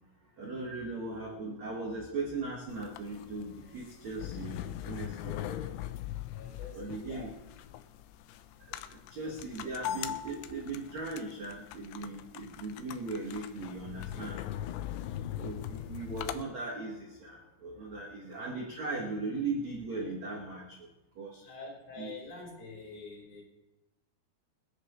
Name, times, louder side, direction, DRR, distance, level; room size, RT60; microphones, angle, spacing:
voice 1, 0.4-5.4 6.7-7.3 8.7-14.4 15.4-20.9 21.1-21.4 22.0-22.1, right 3 dB, 60° right, -2 dB, 1.8 m, -38 dB
sound 1, 2.7-16.4, left 12 dB, 85° left, 2.6 m, -41 dB
voice 2, 5.2-5.8 6.3-7.3 9.2-9.7 15.0-15.4 21.4-23.4, left 3 dB, 55° left, -2 dB, 6.6 m, -47 dB
27.5 x 11.0 x 3.2 m, 1.0 s
omnidirectional pair, 5.9 m